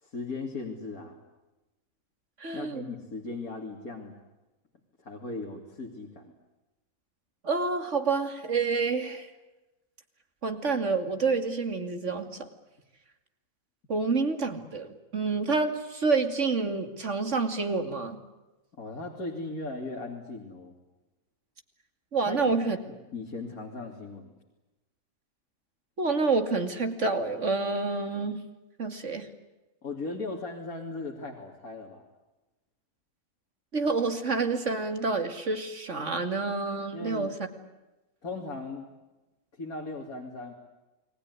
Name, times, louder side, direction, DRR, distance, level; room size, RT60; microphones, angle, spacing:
voice 1, 0.0-1.2 2.5-4.1 5.0-6.3 18.8-20.8 22.3-22.5 23.1-24.3 29.8-32.1 36.9-37.3 38.2-38.9 39.6-40.5, left 3 dB, 80° left, 0 dB, 3.5 m, -38 dB
voice 2, 2.4-2.8 7.4-9.3 10.4-12.4 13.9-18.2 22.1-22.8 26.0-28.4 28.8-29.3 33.7-37.3, right 4 dB, 55° right, 8 dB, 2.8 m, -28 dB
29.5 x 21.0 x 9.7 m, 1.1 s
omnidirectional pair, 1.5 m